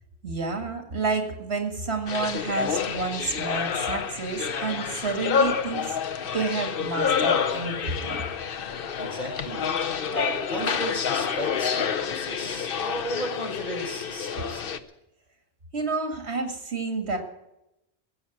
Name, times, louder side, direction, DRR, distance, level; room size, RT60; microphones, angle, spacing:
voice 1, 0.2-6.0 6.3-8.2 15.7-17.2, right 4 dB, 75° right, 5 dB, 2.4 m, -30 dB
sound 1, 2.1-14.8, left 7 dB, 60° left, 1.0 m, -28 dB
voice 2, 9.0-14.7, equal, 45° left, -1 dB, 5.1 m, -35 dB
16.5 x 7.9 x 9.2 m, 0.89 s
omnidirectional pair, 1.1 m